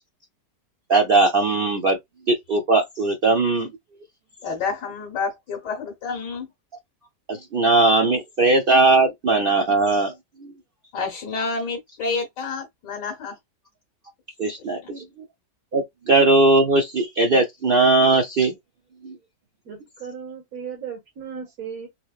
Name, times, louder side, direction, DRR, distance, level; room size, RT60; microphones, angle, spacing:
voice 1, 0.9-2.0 2.3-3.7 7.3-10.1 10.4-10.5 14.4-15.0 15.7-18.5 19.0-19.1, right 3 dB, 75° right, 0.5 m, -19 dB
voice 2, 4.4-6.5 10.9-13.4 14.4-14.5 14.8-14.9, left 4 dB, 80° left, 1.7 m, -29 dB
voice 3, 19.7-21.9, right 7 dB, 55° right, 1.9 m, -36 dB
4.5 x 2.9 x 2.4 m
omnidirectional pair, 1.9 m